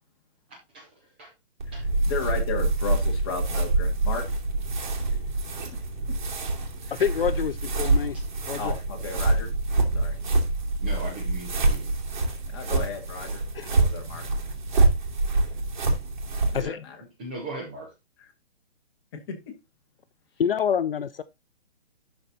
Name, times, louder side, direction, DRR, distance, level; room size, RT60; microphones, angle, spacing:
voice 1, 0.5-1.3 1.7-1.9 8.1-8.3 10.8-11.8 16.6-16.7 17.2-17.9, right 2 dB, 10° right, 0.7 m, -39 dB
sound 1, 1.6-16.6, right 2 dB, 45° right, 2.8 m, -26 dB
voice 2, 2.1-4.2 6.9-7.0 8.6-9.5 9.9-10.2 12.5-14.2 14.7-14.8 16.5-17.0 19.1-19.5, left 5 dB, 25° left, 2.0 m, -34 dB
voice 3, 7.0-8.2 8.5-8.8 13.5-13.7 16.5-16.8 20.4-21.2, left 8 dB, 60° left, 0.6 m, -26 dB
12.0 x 4.5 x 4.0 m
hypercardioid pair, 175°, 32 cm